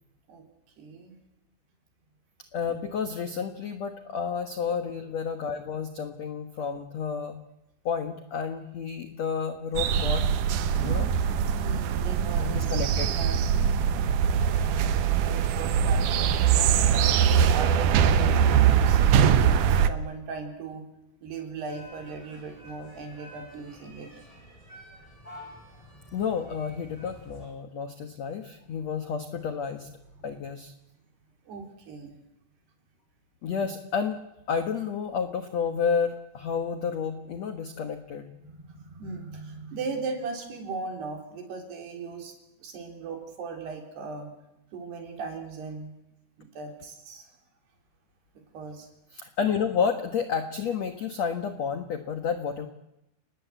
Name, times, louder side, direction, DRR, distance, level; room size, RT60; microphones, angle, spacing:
voice 1, 0.8-1.2 4.6-4.7 11.6-13.4 14.2-14.4 15.0-16.8 17.3-19.2 19.9-20.8 21.2-24.1 30.3-30.4 31.5-32.2 38.4-42.3 42.6-44.3 44.7-45.9 46.4-47.3 48.5-48.9, right 4 dB, 65° right, 4 dB, 5.5 m, -38 dB
voice 2, 2.5-7.4 7.8-10.2 10.8-11.1 12.4-13.1 26.1-29.9 30.2-30.7 33.4-38.3 49.1-52.7, left 6 dB, 75° left, 8 dB, 1.5 m, -30 dB
sound 1, 9.7-19.9, right 8 dB, 90° right, 1.8 m, -22 dB
sound 2, 21.7-27.5, equal, 5° left, 7.8 m, -49 dB
29.5 x 20.0 x 8.1 m, 0.89 s
omnidirectional pair, 5.2 m